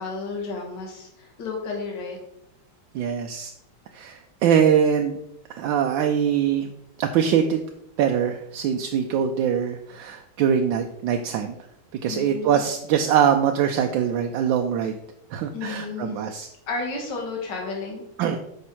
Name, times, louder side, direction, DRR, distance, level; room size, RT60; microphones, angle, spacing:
voice 1, 0.0-2.2 12.1-12.6 15.5-16.2 16.7-18.0, left 4 dB, 60° left, 0 dB, 2.3 m, -32 dB
voice 2, 2.9-3.5 3.9-5.2 5.5-6.7 7.0-7.6 8.0-11.5 12.0-15.0 15.3-16.5 18.2-18.4, right 8 dB, 75° right, 5 dB, 1.3 m, -23 dB
8.4 x 5.4 x 4.4 m, 0.79 s
omnidirectional pair, 2.2 m